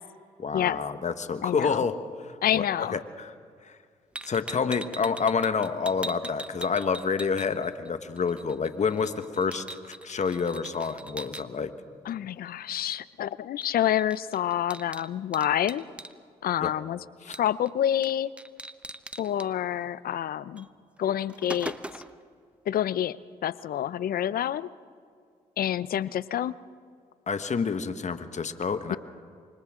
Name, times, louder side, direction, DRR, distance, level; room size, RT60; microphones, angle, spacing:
voice 1, 0.4-1.9 2.2-2.6 2.9-3.3 4.2-9.6 10.0-11.7 16.6-16.7 17.3-17.4 27.3-29.0, left 5 dB, 50° left, 10 dB, 1.5 m, -28 dB
voice 2, 1.4-1.8 2.4-3.0 12.0-15.8 16.4-18.3 19.2-20.7 21.0-21.7 22.7-23.2 23.4-24.7 25.6-26.5 28.9-29.0, left 11 dB, 70° left, 18 dB, 0.6 m, -28 dB
sound 1, 4.1-7.9 8.2-11.4 13.6-13.7 14.0-16.1 17.3-17.7 18.0-18.1 18.4-19.5 20.6-20.7 21.0-22.2, right 1 dB, 5° right, 1.1 m, -41 dB
29.0 x 25.0 x 3.8 m, 2.2 s
supercardioid pair, 55°, 16 cm